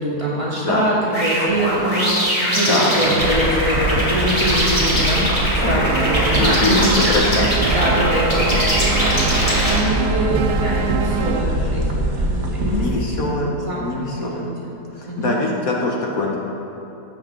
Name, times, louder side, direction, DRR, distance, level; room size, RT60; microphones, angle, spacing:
voice 1, 0.0-7.2 7.6-15.4, right 1 dB, 20° right, -7 dB, 2.1 m, -24 dB
sound 1, 1.1-9.8, equal, 20° left, 2.2 m, -21 dB
sound 2, 3.2-12.9, right 1 dB, 45° right, 1.4 m, -24 dB
sound 3, 5.8-11.4, right 6 dB, 90° right, 1.2 m, -26 dB
voice 2, 6.3-7.6 12.7-14.5 14.9-16.4, left 3 dB, 60° left, -1 dB, 1.4 m, -23 dB
16.0 x 7.6 x 3.7 m, 2.9 s
omnidirectional pair, 1.8 m